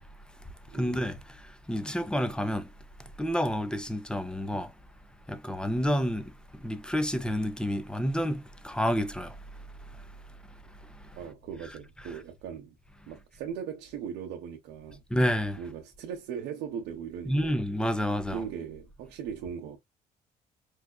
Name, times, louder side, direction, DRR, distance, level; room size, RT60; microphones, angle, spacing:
voice 1, 0.7-1.4 1.7-2.7 3.2-4.7 5.3-6.3 6.6-9.4 15.1-15.6 17.3-18.4, equal, 5° left, 0.5 m, -29 dB
voice 2, 11.2-12.7 13.1-15.0 15.6-17.6 18.3-19.8, right 7 dB, 85° right, 0.7 m, -39 dB
4.7 x 2.4 x 2.3 m
cardioid pair, 110°, 17 cm